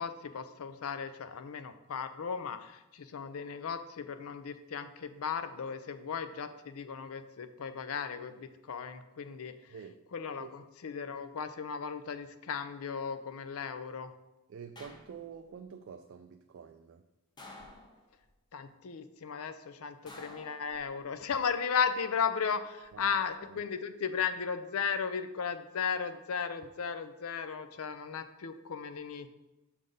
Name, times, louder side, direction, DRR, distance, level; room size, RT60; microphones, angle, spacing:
voice 1, 0.0-9.7 10.1-14.1 18.5-29.3, left 6 dB, 70° left, 11 dB, 0.5 m, -36 dB
voice 2, 9.7-10.0 10.4-10.5 14.5-17.0 22.9-23.6, right 6 dB, 55° right, 7 dB, 0.3 m, -48 dB
sound 1, 14.8-15.5 17.4-18.3 20.1-21.2 22.6-23.1, left 2 dB, 20° left, 0.7 m, -52 dB
6.4 x 3.9 x 5.2 m, 0.97 s
head